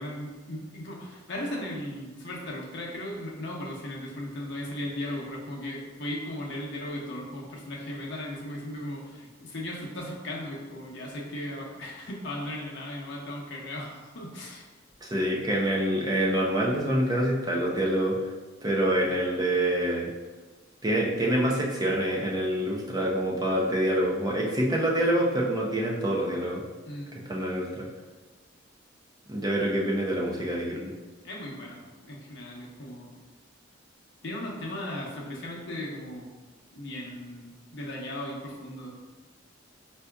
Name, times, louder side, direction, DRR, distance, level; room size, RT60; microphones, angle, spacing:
voice 1, 0.0-14.7 26.8-27.1 31.2-33.1 34.2-36.3 36.7-38.9, left 1 dB, 60° left, -3 dB, 0.7 m, -37 dB
voice 2, 15.0-18.2 18.6-20.1 20.8-26.6 27.3-27.9 29.3-30.9, right 1 dB, 20° right, -3 dB, 0.6 m, -26 dB
4.6 x 2.7 x 2.3 m, 1.3 s
head